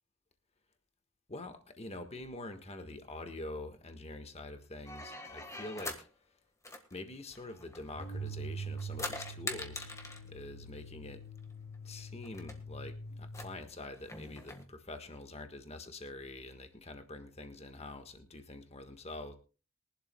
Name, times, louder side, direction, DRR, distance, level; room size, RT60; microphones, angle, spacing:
voice 1, 1.3-6.1 6.9-9.9 10.2-11.2 11.8-19.3, left 2 dB, 30° left, 7 dB, 1.5 m, -45 dB
sound 1, 4.9-6.1 6.6-8.3 8.7-10.3 11.4-11.5 11.7-11.8 12.2-12.6 13.3-14.6, left 2 dB, 15° left, 1.5 m, -43 dB
sound 2, 7.9-13.6, right 2 dB, 85° left, 2.7 m, -44 dB
22.5 x 11.5 x 2.3 m, 0.35 s
head